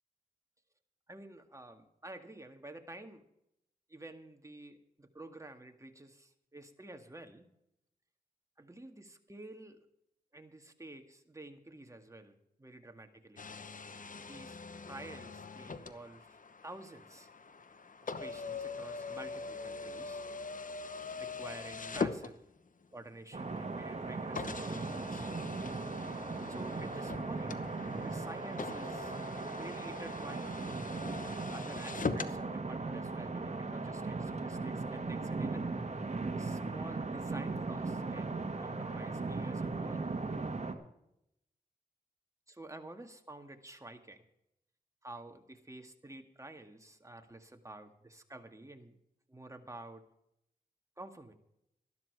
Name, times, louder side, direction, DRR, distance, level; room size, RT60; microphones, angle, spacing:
voice 1, 1.1-3.2 3.9-7.5 8.6-9.9 10.3-13.5 14.2-16.4 16.6-17.3 18.0-20.2 21.2-22.4 22.9-25.2 26.5-27.6 28.0-29.2 29.5-30.7 31.3-35.7 36.4-40.0 42.5-44.3 45.0-49.0 49.3-50.0 51.0-51.3, right 2 dB, 20° right, 5 dB, 1.9 m, -50 dB
sound 1, 13.4-22.9 23.6-23.7 24.4-32.4, left 4 dB, 55° left, 1.0 m, -42 dB
sound 2, 23.3-40.7, right 3 dB, 45° right, 1.7 m, -38 dB
13.0 x 12.0 x 4.8 m, 0.80 s
cardioid pair, 45°, 16 cm